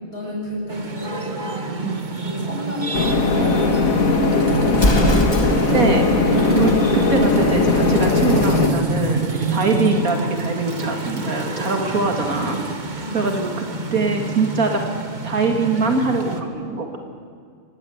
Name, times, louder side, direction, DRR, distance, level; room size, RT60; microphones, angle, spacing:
voice 1, 0.1-1.9 2.2-5.0 13.0-13.4, left 1 dB, 45° left, -4 dB, 7.1 m, -31 dB
sound 1, 0.7-16.4, right 2 dB, 35° right, 1.7 m, -27 dB
sound 2, 2.9-8.7, left 3 dB, 75° left, 2.4 m, -19 dB
Explosion, 4.7-5.9, left 1 dB, 20° left, 1.7 m, -20 dB
voice 2, 5.7-6.1 6.5-12.6 12.9-13.5 13.9-14.8 15.2-17.0, right 3 dB, 85° right, 3 dB, 2.7 m, -23 dB
25.0 x 20.5 x 8.1 m, 2.1 s
omnidirectional pair, 1.4 m